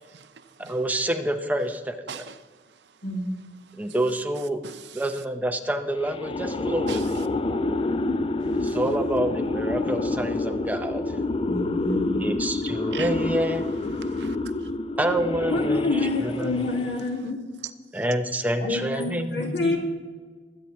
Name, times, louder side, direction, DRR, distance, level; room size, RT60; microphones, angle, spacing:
voice 1, 0.1-0.8 2.1-2.4 3.8-3.9 4.6-5.0 6.9-7.3 8.6-8.8 12.9-13.1 14.0-14.4, right 7 dB, 75° right, 0.7 m, -40 dB
voice 2, 0.7-2.2 3.8-4.6 4.9-7.2 8.5-11.2 12.2-13.7 15.0-15.8 16.2-16.5 17.9-19.4, right 1 dB, 10° right, 0.7 m, -27 dB
sound 1, 6.0-17.1, left 2 dB, 30° left, 0.4 m, -28 dB
voice 3, 11.5-12.2 15.5-17.4 18.6-19.8, left 2 dB, 80° left, 2.1 m, -27 dB
21.5 x 8.4 x 3.1 m
head